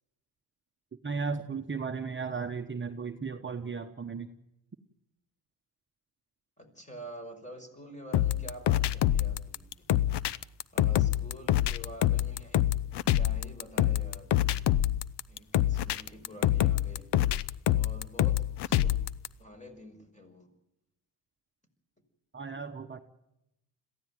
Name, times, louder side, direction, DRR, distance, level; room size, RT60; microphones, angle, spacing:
voice 1, 1.0-4.3 22.3-23.0, right 5 dB, 25° right, 5 dB, 1.2 m, -35 dB
voice 2, 6.6-9.7 10.7-12.6 13.1-14.3 15.3-17.1 17.7-19.0 19.4-20.5, equal, 15° left, 5 dB, 5.6 m, -47 dB
sound 1, 8.1-19.3, left 12 dB, 70° left, 0.8 m, -26 dB
22.0 x 15.5 x 9.2 m, 0.87 s
cardioid pair, 75°, 42 cm